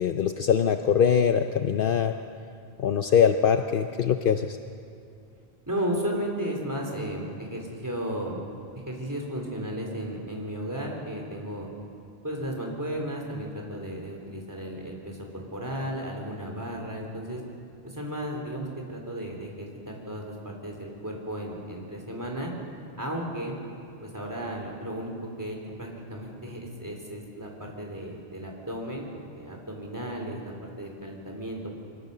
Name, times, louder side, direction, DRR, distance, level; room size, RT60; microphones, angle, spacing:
voice 1, 0.0-2.1 2.8-4.6, left 7 dB, 65° left, 7 dB, 0.8 m, -22 dB
voice 2, 5.7-8.4 8.9-11.7 12.2-17.4 17.8-22.5 23.0-23.5 24.0-31.7, equal, 20° right, 0 dB, 3.3 m, -34 dB
24.0 x 16.0 x 6.7 m, 2.5 s
omnidirectional pair, 1.0 m